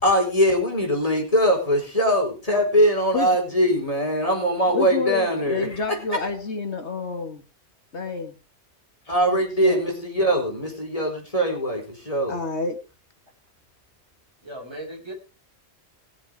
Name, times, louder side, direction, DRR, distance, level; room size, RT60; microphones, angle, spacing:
voice 1, 0.0-5.7 9.1-12.3, equal, 30° left, 1 dB, 4.8 m, -21 dB
voice 2, 4.7-7.4 7.9-8.4 9.3-9.8 12.3-12.8, left 4 dB, 75° left, 6 dB, 2.2 m, -29 dB
voice 3, 14.4-15.1, right 1 dB, 25° right, -1 dB, 5.3 m, -37 dB
21.0 x 7.4 x 4.8 m, 0.32 s
omnidirectional pair, 1.1 m